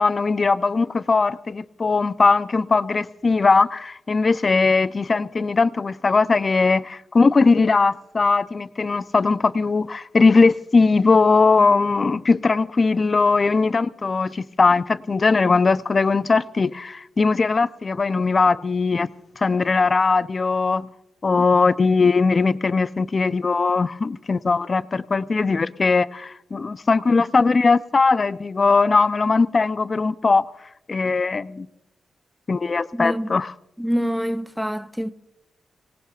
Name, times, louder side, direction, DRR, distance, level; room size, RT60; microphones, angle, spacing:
voice 1, 0.0-19.1 19.4-20.9 21.2-30.4 30.9-31.7 32.5-33.5, left 4 dB, 45° left, 0.5 m, -19 dB
voice 2, 32.9-33.3 33.8-35.1, equal, ahead, 0.6 m, -25 dB
25.0 x 18.0 x 2.4 m
cardioid pair, 60°, 0 cm